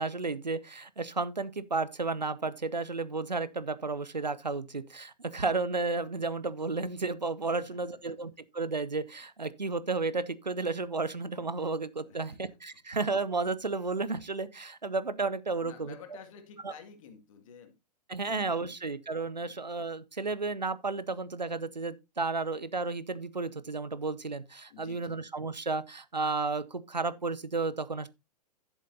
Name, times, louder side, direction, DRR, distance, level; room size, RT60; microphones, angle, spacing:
voice 1, 0.0-16.0 16.6-16.7 18.1-28.1, right 3 dB, 90° right, 0.7 m, -32 dB
voice 2, 12.1-12.6 15.6-17.7 18.2-18.7 19.4-19.6 24.7-25.1, left 6 dB, 50° left, 2.1 m, -51 dB
12.0 x 7.3 x 2.8 m
figure-of-eight pair, 105°, 21 cm